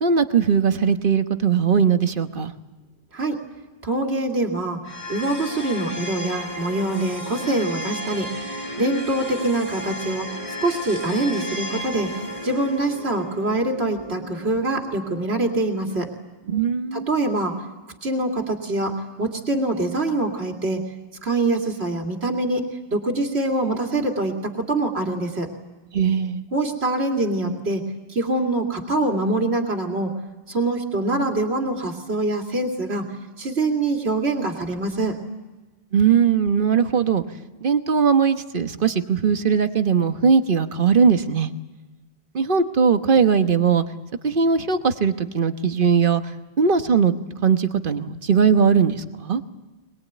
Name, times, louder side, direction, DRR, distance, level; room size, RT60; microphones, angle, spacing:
voice 1, 0.0-2.5 16.5-17.1 25.9-26.4 35.9-37.2 37.6-41.5 42.3-43.8 44.2-46.2 46.6-47.1 47.4-49.4, right 6 dB, 55° right, 9 dB, 1.3 m, -19 dB
voice 2, 3.8-4.8 5.1-8.3 8.8-10.3 10.6-12.1 12.4-16.1 16.9-17.5 18.0-20.8 21.2-25.5 26.5-27.8 28.1-30.1 30.5-33.1 33.4-35.2, right 2 dB, 70° right, 2 dB, 2.7 m, -24 dB
sound 1, 4.8-15.9, equal, 85° left, 6.1 m, -34 dB
23.5 x 20.5 x 9.2 m, 1.2 s
omnidirectional pair, 1.1 m